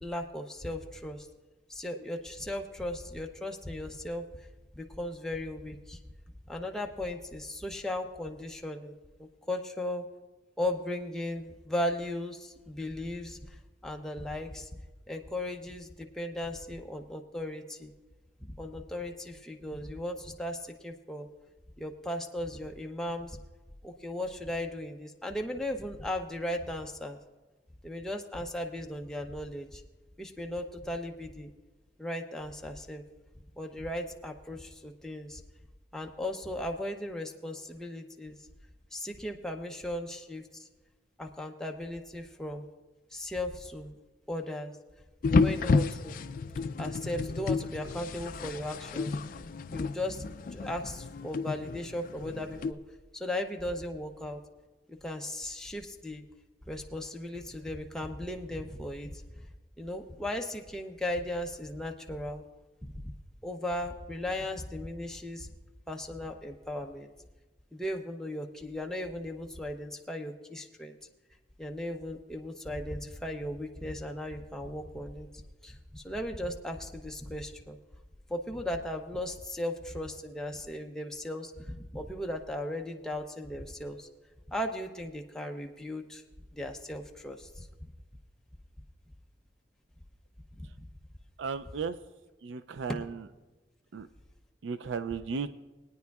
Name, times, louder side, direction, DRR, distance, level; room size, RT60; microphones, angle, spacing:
voice 1, 0.0-1.3 1.7-4.2 4.7-6.0 6.5-10.0 10.6-14.7 15.1-17.9 18.4-21.3 21.8-23.4 23.8-27.2 27.8-29.8 30.2-31.5 32.0-33.0 33.6-35.4 35.9-38.4 38.9-40.7 41.2-42.7 43.1-44.0 44.3-44.8 45.2-46.2 46.8-49.4 49.7-52.8 53.1-54.4 55.0-56.2 56.7-59.2 59.8-62.4 62.8-63.1 63.4-65.5 65.9-67.1 67.7-71.0 71.6-77.8 78.3-84.1 84.5-86.2 86.5-87.7 90.6-90.7, left 1 dB, 5° left, 1 dB, 0.6 m, -37 dB
sound 1, 45.2-52.7, left 4 dB, 50° left, 0.3 m, -31 dB
voice 2, 91.4-92.0 92.4-93.2 93.9-94.1 94.6-95.5, right 5 dB, 90° right, 12 dB, 0.4 m, -35 dB
21.0 x 9.3 x 2.3 m, 1.2 s
head